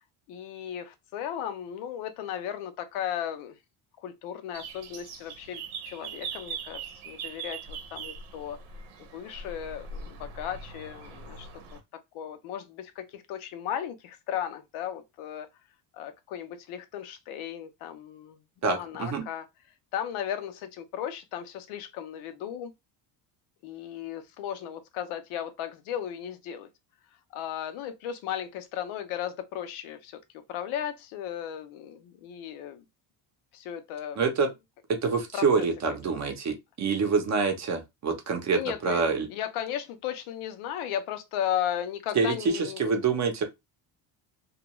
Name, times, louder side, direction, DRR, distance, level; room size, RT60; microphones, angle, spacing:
voice 1, 0.3-3.6 4.0-8.6 9.1-11.8 12.1-15.5 15.9-18.4 18.8-19.4 19.9-22.7 23.6-26.7 27.3-30.2 30.5-32.8 33.5-34.2 35.3-35.7 38.5-42.9, left 10 dB, 80° left, 0.7 m, -35 dB
sound 1, 4.5-11.8, right 5 dB, 85° right, 0.8 m, -41 dB
voice 2, 18.6-19.2 34.2-34.5 34.9-39.3 42.1-43.4, right 5 dB, 35° right, 0.7 m, -26 dB
2.4 x 2.3 x 2.9 m
cardioid pair, 130°, 49 cm